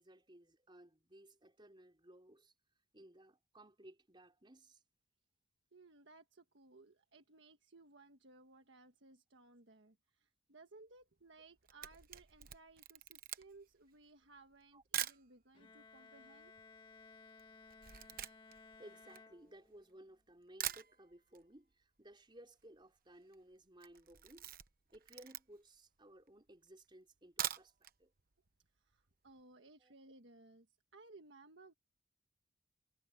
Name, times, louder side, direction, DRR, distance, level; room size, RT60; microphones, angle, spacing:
voice 1, 0.0-2.5 2.9-4.8 14.7-14.8 18.8-24.5 24.9-27.7 28.0-28.1 29.8-29.9, right 1 dB, 25° right, 4.4 m, -59 dB
voice 2, 5.7-16.5 28.8-30.7 30.9-31.7, right 3 dB, 75° right, 1.5 m, -61 dB
Camera, 11.4-15.3 16.0-16.1 16.2-19.9 20.3-20.4 20.6-21.4 21.7-21.8 22.1-22.2 22.4-22.8 23.1-23.4 23.7-25.8 26.3-26.4 27.2-28.0 28.3-28.4 28.8-28.9, right 11 dB, 50° right, 1.0 m, -44 dB
Bowed string instrument, 15.5-20.0, left 4 dB, 25° left, 1.4 m, -59 dB
head